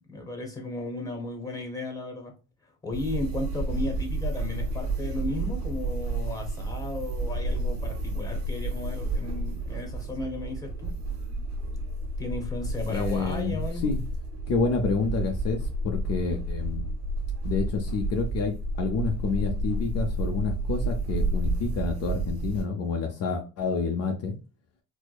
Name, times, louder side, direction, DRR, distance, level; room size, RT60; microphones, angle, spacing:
voice 1, 0.1-2.3 2.8-10.9 12.2-13.9, left 2 dB, 10° left, 2 dB, 1.1 m, -35 dB
sound 1, 2.9-22.6, right 2 dB, 50° right, 1.4 m, -31 dB
voice 2, 12.9-14.0 14.5-16.9 17.4-24.4, left 4 dB, 50° left, 3 dB, 0.6 m, -29 dB
4.5 x 2.1 x 2.3 m, 0.33 s
cardioid pair, 140°, 33 cm